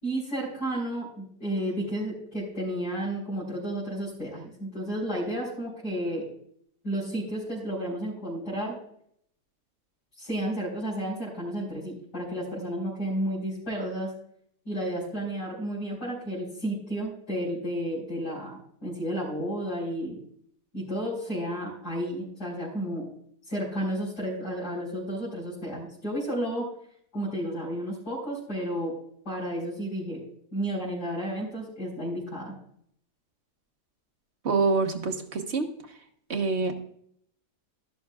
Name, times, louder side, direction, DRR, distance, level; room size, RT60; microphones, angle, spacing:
voice 1, 0.0-6.3 6.8-8.8 10.2-14.1 14.6-20.2 20.7-23.1 23.5-26.7 27.1-28.9 29.2-30.2 30.5-32.5, right 1 dB, 75° left, -8 dB, 4.6 m, -32 dB
voice 2, 34.4-36.0 36.3-36.7, right 4 dB, 45° right, 5 dB, 1.3 m, -26 dB
13.0 x 12.0 x 2.4 m, 0.66 s
omnidirectional pair, 1.8 m